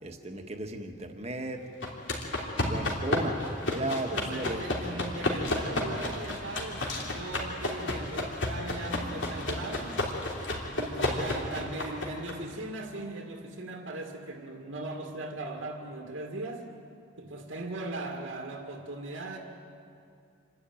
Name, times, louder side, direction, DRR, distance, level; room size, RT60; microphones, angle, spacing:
voice 1, 0.0-1.6 2.6-3.4 3.7-4.7, right 1 dB, 35° right, 4 dB, 1.5 m, -35 dB
sound 1, 1.8-12.3, left 1 dB, 70° left, 3.2 m, -32 dB
voice 2, 4.1-10.0 10.7-16.7 17.2-19.4, right 2 dB, 90° right, 1 dB, 2.2 m, -38 dB
27.5 x 12.0 x 9.1 m, 2.5 s
head